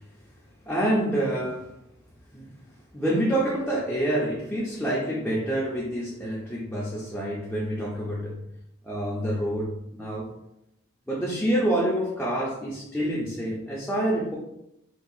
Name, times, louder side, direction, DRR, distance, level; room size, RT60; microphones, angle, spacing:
voice 1, 0.7-1.7 2.3-2.5 2.9-8.4 8.8-10.3 11.1-14.3, right 1 dB, 5° left, -6 dB, 0.5 m, -27 dB
2.7 x 2.4 x 3.9 m, 0.83 s
head